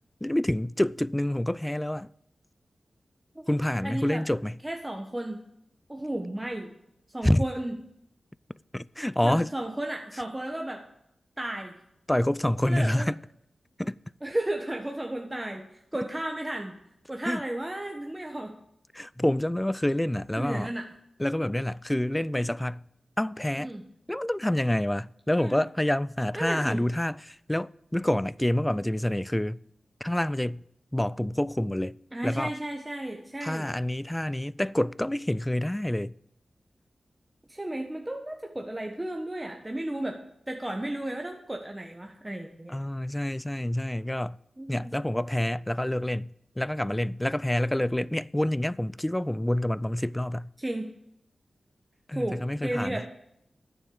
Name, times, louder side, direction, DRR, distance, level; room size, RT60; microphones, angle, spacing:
voice 1, 0.2-2.1 3.5-4.6 7.2-7.4 8.7-9.5 12.1-13.2 13.8-14.0 17.3-17.4 18.9-20.7 21.2-22.8 23.2-23.7 24.1-29.6 30.0-30.6 30.9-32.0 32.2-32.5 33.4-36.1 42.7-44.4 44.7-50.5 52.1-53.0, left 1 dB, 15° left, 0.3 m, -27 dB
voice 2, 3.3-4.2 4.6-5.4 5.9-6.7 7.1-7.7 9.2-10.9 11.4-11.8 12.7-13.1 14.2-15.6 15.9-16.8 17.1-18.6 20.4-20.9 23.6-23.8 25.4-25.6 26.4-26.8 32.1-33.7 37.5-40.2 40.5-42.7 44.6-44.9 50.6-50.9 52.1-53.1, right 1 dB, 20° right, 1.2 m, -33 dB
9.5 x 6.9 x 8.6 m
cardioid pair, 45°, 0 cm